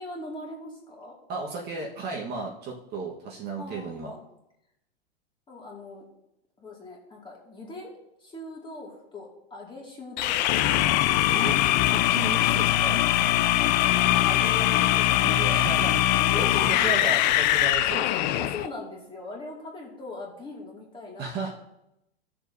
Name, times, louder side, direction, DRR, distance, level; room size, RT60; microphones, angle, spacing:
voice 1, 0.0-1.2 3.6-4.2 5.5-6.0 6.6-7.9 8.2-11.7 13.5-15.5 15.8-17.0 18.4-21.5, left 3 dB, 15° left, -2 dB, 2.2 m, -41 dB
voice 2, 1.3-4.2 11.3-11.5 11.9-13.0 15.2-16.0 16.4-16.5 16.8-18.5 21.2-21.5, right 3 dB, 30° right, -2 dB, 1.4 m, -34 dB
sound 1, 10.2-18.7, left 14 dB, 45° left, 0.4 m, -22 dB
15.5 x 6.7 x 2.7 m, 0.84 s
hypercardioid pair, 135°, 33 cm